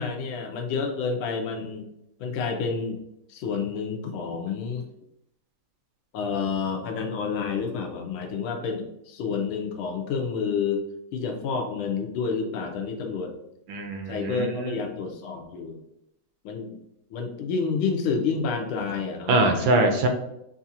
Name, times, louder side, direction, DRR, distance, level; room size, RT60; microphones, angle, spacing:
voice 1, 0.0-1.9 2.2-3.0 3.3-4.8 6.1-13.3 14.1-15.8 16.4-16.8 17.1-19.8, left 5 dB, 80° left, 4 dB, 1.5 m, -29 dB
voice 2, 13.7-14.7 19.3-20.1, right 2 dB, 75° right, 4 dB, 1.3 m, -23 dB
5.8 x 2.4 x 2.7 m, 0.81 s
omnidirectional pair, 2.3 m